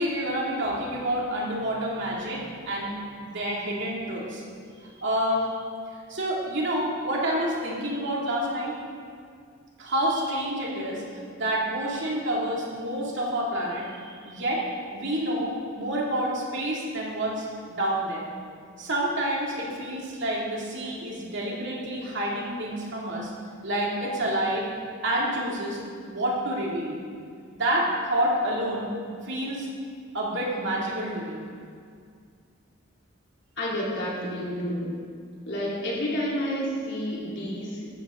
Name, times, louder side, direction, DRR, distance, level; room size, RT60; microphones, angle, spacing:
voice 1, 0.0-2.9 3.2-4.4 4.9-5.6 6.1-8.7 9.8-11.0 11.3-18.3 18.8-23.3 23.6-24.7 25.0-25.8 26.1-27.0 27.5-28.9 29.2-29.7 30.1-31.4, right 1 dB, 55° right, -4 dB, 2.6 m, -28 dB
voice 2, 33.6-34.9 35.5-37.9, equal, 55° left, -6 dB, 3.6 m, -30 dB
13.5 x 12.5 x 3.8 m, 2.2 s
head